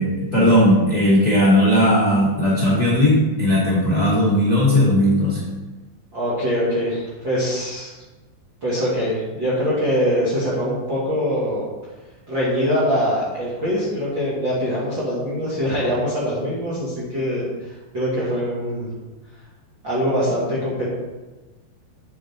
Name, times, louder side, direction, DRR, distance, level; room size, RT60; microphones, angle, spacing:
voice 1, 0.0-5.4, left 1 dB, 60° left, -7 dB, 0.9 m, -17 dB
voice 2, 6.1-8.0 8.6-11.7 12.3-17.5 17.9-18.9 19.8-20.9, equal, 45° right, -7 dB, 1.6 m, -23 dB
9.0 x 7.3 x 4.3 m, 1.2 s
omnidirectional pair, 5.2 m